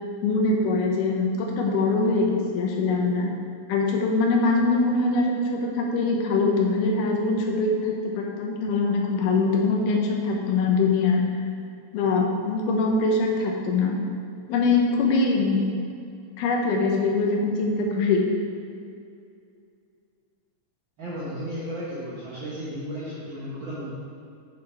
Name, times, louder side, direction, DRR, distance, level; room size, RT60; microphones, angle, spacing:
voice 1, 0.2-3.3 3.7-11.2 11.9-13.9 14.5-15.6 16.4-18.2, left 3 dB, 75° left, 0 dB, 2.3 m, -23 dB
voice 2, 21.0-23.9, equal, 70° right, -8 dB, 1.1 m, -34 dB
7.5 x 4.3 x 4.4 m, 2.5 s
omnidirectional pair, 4.0 m